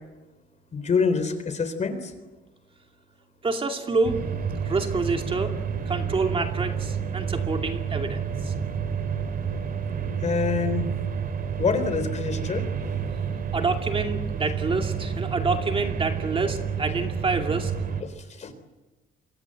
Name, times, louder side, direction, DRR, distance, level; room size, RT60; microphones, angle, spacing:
voice 1, 0.7-2.1 10.2-10.9 11.6-12.6 18.3-18.5, left 5 dB, 35° left, 11 dB, 3.7 m, -26 dB
voice 2, 3.4-4.2 4.6-5.5 5.9-8.5 13.5-17.7, right 3 dB, 25° right, 4 dB, 2.6 m, -27 dB
sound 1, 4.0-18.0, right 6 dB, 45° right, 3.5 m, -29 dB
28.0 x 24.0 x 7.8 m, 1.1 s
cardioid pair, 145°, 20 cm